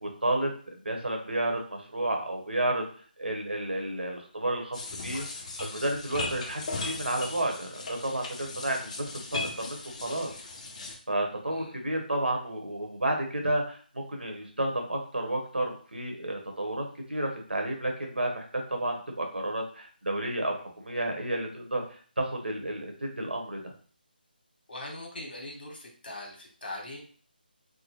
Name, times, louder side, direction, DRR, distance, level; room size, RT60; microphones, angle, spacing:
voice 1, 0.0-2.8 3.2-5.2 5.6-9.0 9.3-10.3 11.1-16.8 17.1-18.4 18.7-21.8 22.2-23.7, right 1 dB, 90° right, 2 dB, 1.1 m, -31 dB
sound 1, 4.7-11.0, left 3 dB, 40° left, 0.6 m, -38 dB
voice 2, 24.7-27.0, left 1 dB, 65° left, 0 dB, 1.3 m, -41 dB
3.6 x 2.1 x 3.0 m, 0.44 s
figure-of-eight pair, 160°, 5 cm